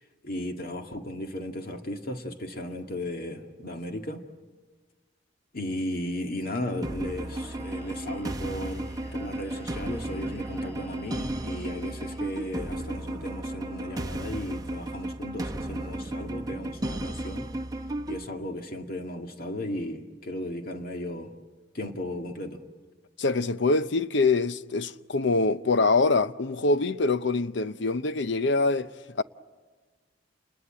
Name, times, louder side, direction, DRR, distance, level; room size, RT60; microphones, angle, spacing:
voice 1, 0.2-4.3 5.5-17.5 18.1-21.3 21.7-22.6, left 1 dB, 55° left, 2.0 m, -35 dB
sound 1, 6.8-18.2, right 1 dB, 20° right, 0.9 m, -34 dB
Singing, 7.4-13.3, right 1 dB, 10° left, 6.7 m, -51 dB
voice 2, 23.2-29.2, left 3 dB, 70° left, 0.7 m, -24 dB
29.0 x 21.0 x 8.9 m
head